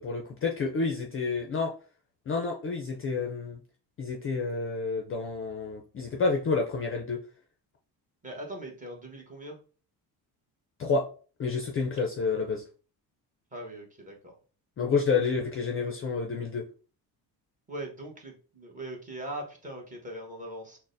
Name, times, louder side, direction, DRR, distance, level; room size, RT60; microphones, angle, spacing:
voice 1, 0.0-1.7 2.3-3.6 4.0-7.2 10.8-11.1 11.4-12.6 14.8-16.6, left 4 dB, 30° left, 1 dB, 0.4 m, -29 dB
voice 2, 8.2-9.6 13.5-14.3 17.7-20.8, right 1 dB, 20° right, 0 dB, 1.0 m, -40 dB
6.1 x 2.1 x 2.6 m, 0.39 s
cardioid pair, 150°, 43 cm